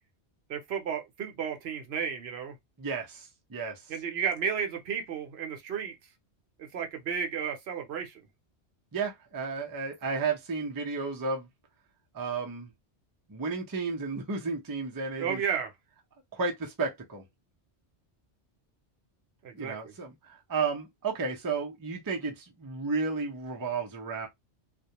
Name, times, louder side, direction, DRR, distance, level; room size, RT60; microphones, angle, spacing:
voice 1, 0.5-2.6 3.9-5.9 6.6-8.1 15.2-15.7 19.4-19.9, right 7 dB, 70° right, 0.9 m, -33 dB
voice 2, 2.8-3.8 8.9-11.5 12.1-12.7 13.3-15.4 16.3-17.2 19.5-24.3, right 4 dB, 30° right, 0.4 m, -33 dB
2.3 x 2.1 x 2.8 m
omnidirectional pair, 1.2 m